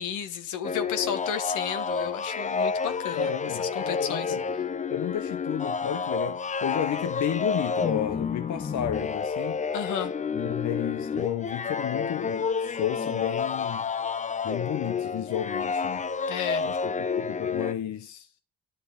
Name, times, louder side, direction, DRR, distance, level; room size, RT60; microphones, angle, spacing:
voice 1, 0.0-3.3 3.6-4.4 9.7-10.1 16.3-16.7, left 8 dB, 90° left, 1.7 m, -32 dB
sound 1, 0.6-17.7, left 5 dB, 25° left, 0.6 m, -30 dB
voice 2, 3.1-4.4 4.9-9.6 10.4-13.9 14.4-16.0 16.6-18.3, left 10 dB, 70° left, 1.1 m, -32 dB
10.5 x 6.0 x 6.7 m
cardioid pair, 90°, 30 cm